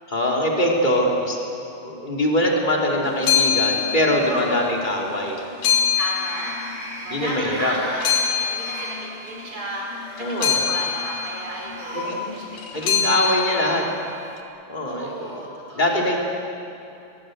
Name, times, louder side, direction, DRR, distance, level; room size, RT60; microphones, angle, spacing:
voice 1, 0.1-1.4 1.8-5.4 7.1-7.8 10.2-10.6 11.9-12.3 12.7-13.9 14.7-15.4 15.7-16.2, left 1 dB, 15° left, -1 dB, 2.8 m, -22 dB
sound 1, 3.1-4.8 5.1-7.4 7.8-14.3, left 8 dB, 65° left, 3.1 m, -25 dB
sound 2, 3.4-3.8 5.9-9.0 9.8-12.2 12.5-12.6 13.7-13.8, left 1 dB, 45° left, 8.1 m, -37 dB
voice 2, 4.3-4.8 6.0-6.6 7.0-9.9 10.2-13.8 14.8-16.2, right 1 dB, 35° right, -2 dB, 5.7 m, -34 dB
23.0 x 22.0 x 8.0 m, 2.7 s
omnidirectional pair, 4.3 m